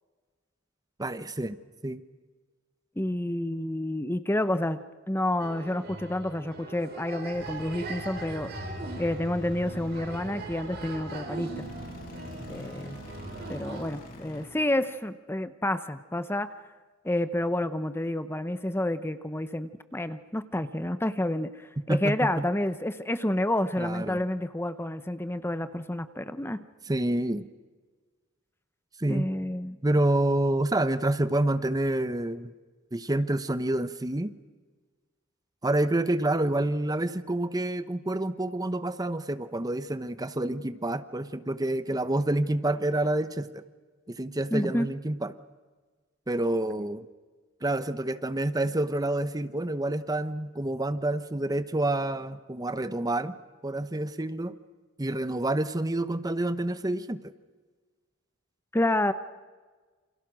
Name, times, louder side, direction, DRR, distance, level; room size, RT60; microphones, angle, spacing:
voice 1, 1.0-1.6 1.8-2.0 21.9-22.4 23.8-24.2 26.9-27.4 29.0-29.3 29.8-32.5 32.9-34.3 35.6-43.6 44.1-45.3 46.3-47.1 47.6-53.4 53.6-54.5 55.0-57.2, right 1 dB, 20° right, 13 dB, 0.9 m, -28 dB
voice 2, 3.0-8.5 9.0-11.7 12.5-12.9 13.5-16.5 17.0-26.6 29.1-29.8 44.5-44.9 58.7-59.1, left 1 dB, 10° left, 12 dB, 0.8 m, -29 dB
sound 1, 5.4-13.9, right 2 dB, 55° right, 4.1 m, -40 dB
sound 2, 7.3-14.5, equal, 45° left, 6.9 m, -43 dB
28.5 x 27.0 x 6.3 m, 1.4 s
head